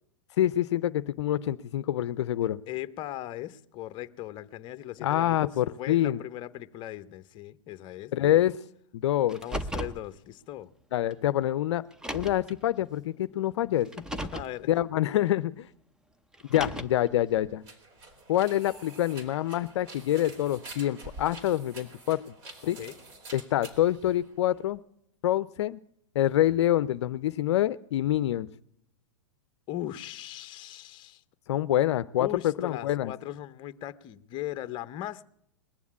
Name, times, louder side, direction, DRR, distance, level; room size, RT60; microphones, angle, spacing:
voice 1, 0.4-2.6 5.0-6.2 8.1-8.6 8.9-9.4 10.9-11.8 12.1-13.9 14.7-15.7 16.5-17.6 18.3-22.2 22.6-22.8 23.3-24.8 25.2-25.8 26.1-28.5 31.5-33.1, left 13 dB, 60° left, 14 dB, 0.5 m, -26 dB
voice 2, 2.7-8.4 9.4-10.7 14.0-14.1 14.3-14.7 22.8-22.9 29.7-31.2 32.2-35.2, left 14 dB, 30° left, 14 dB, 0.7 m, -38 dB
Car, 9.3-10.0 11.1-11.2 11.9-12.5 13.8-14.5 16.3-17.1, right 1 dB, 5° right, 0.6 m, -35 dB
sound 1, 16.9-24.8, right 2 dB, 45° right, 3.6 m, -48 dB
20.5 x 7.2 x 8.4 m, 0.73 s
hypercardioid pair, 130°, 16 cm